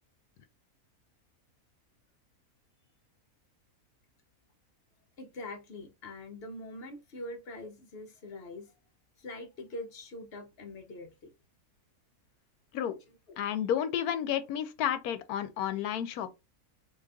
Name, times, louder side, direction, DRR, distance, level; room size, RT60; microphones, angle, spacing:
voice 1, 5.2-8.7 9.2-11.3 13.3-13.4, left 2 dB, 50° left, 0.8 m, -43 dB
voice 2, 13.4-16.3, left 10 dB, 80° left, 1.1 m, -31 dB
3.9 x 2.8 x 2.3 m
omnidirectional pair, 1.6 m